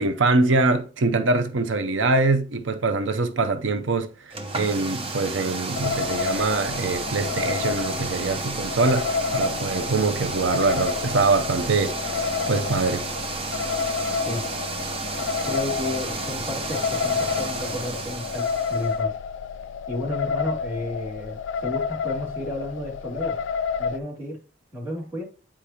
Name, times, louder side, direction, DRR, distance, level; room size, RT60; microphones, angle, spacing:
voice 1, 0.0-12.2 12.5-13.0, right 3 dB, 90° right, 0.6 m, -23 dB
sound 1, 4.3-18.9, right 3 dB, 30° right, 0.8 m, -32 dB
sound 2, 5.8-24.0, left 6 dB, 85° left, 0.3 m, -30 dB
voice 2, 15.4-19.2 19.9-23.4 23.8-24.4 24.7-25.2, left 1 dB, 15° right, 2.4 m, -32 dB
8.6 x 5.0 x 2.8 m
head